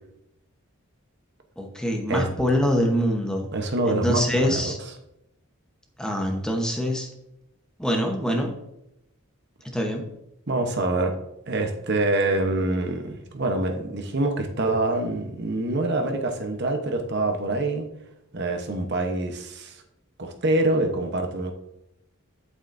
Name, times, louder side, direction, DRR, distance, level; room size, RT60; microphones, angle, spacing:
voice 1, 1.6-3.5 3.9-4.8 6.0-7.1 7.8-8.5 9.7-10.0, equal, 5° left, 1 dB, 0.9 m, -24 dB
voice 2, 3.5-4.7 10.5-11.1 11.5-17.9 18.3-19.7 20.2-21.5, right 2 dB, 55° right, 5 dB, 0.9 m, -25 dB
8.4 x 8.2 x 2.6 m, 0.84 s
head